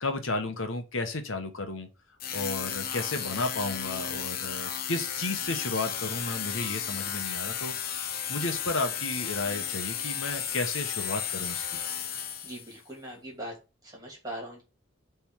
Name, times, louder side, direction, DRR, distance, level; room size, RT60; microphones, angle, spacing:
voice 1, 0.0-1.9 2.3-7.7 8.3-11.8, left 2 dB, 70° left, 1.3 m, -33 dB
sound 1, 2.2-12.8, left 8 dB, 45° left, 0.9 m, -34 dB
voice 2, 12.4-13.6 13.8-14.6, right 1 dB, 20° right, 2.7 m, -40 dB
7.1 x 3.6 x 4.7 m
head